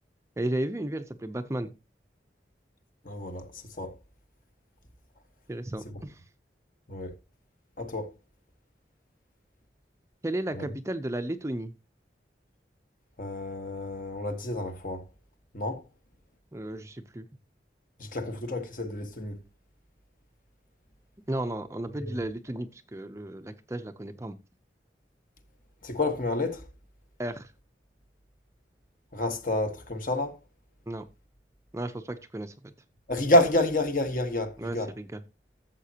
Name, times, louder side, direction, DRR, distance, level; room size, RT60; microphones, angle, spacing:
voice 1, 0.4-1.7 5.5-6.2 10.2-11.7 16.5-17.3 21.3-24.4 27.2-27.5 30.9-31.0 31.7-32.5 34.6-35.2, right 1 dB, 15° right, 0.6 m, -34 dB
voice 2, 3.0-4.0 5.8-6.0 6.9-7.1 7.8-8.1 10.5-10.7 13.2-15.1 15.5-15.9 18.0-19.4 22.0-22.2 25.8-26.7 29.1-30.4 33.1-34.9, left 1 dB, 50° left, 1.5 m, -29 dB
13.5 x 7.5 x 2.8 m
head